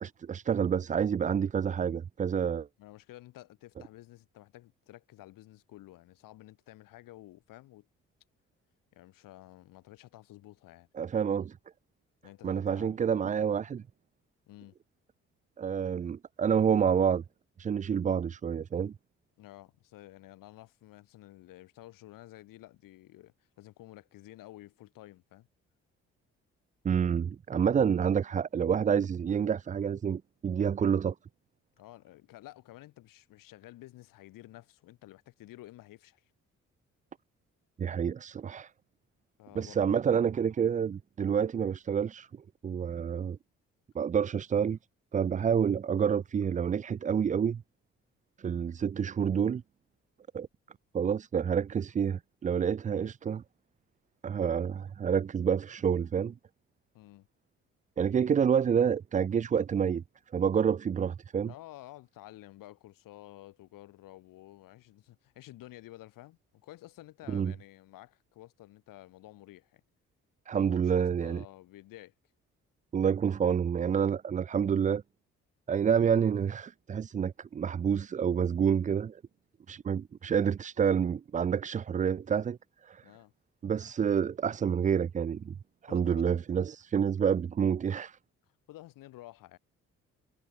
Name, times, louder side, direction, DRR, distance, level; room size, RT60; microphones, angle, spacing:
voice 1, 0.0-2.7 11.0-11.6 12.4-13.8 15.6-17.2 17.6-18.9 26.8-31.1 37.8-38.7 39.6-42.3 42.6-43.4 44.0-44.8 45.1-47.6 48.4-49.6 50.3-50.5 50.9-53.4 54.2-56.3 58.0-60.0 60.3-61.5 67.3-67.5 70.5-71.4 72.9-75.0 75.7-79.2 79.7-82.6 82.8-83.0 83.6-85.5 85.9-88.2, right 7 dB, 25° right, 0.4 m, -28 dB
voice 2, 2.8-7.9 8.9-10.9 12.2-13.0 14.5-14.7 19.4-25.5 31.8-36.3 39.4-40.1 56.9-57.3 61.5-69.8 70.5-72.1 83.0-83.3 85.9-86.3 88.7-89.6, left 16 dB, 80° left, 7.0 m, -51 dB
hypercardioid pair, 50°, 33 cm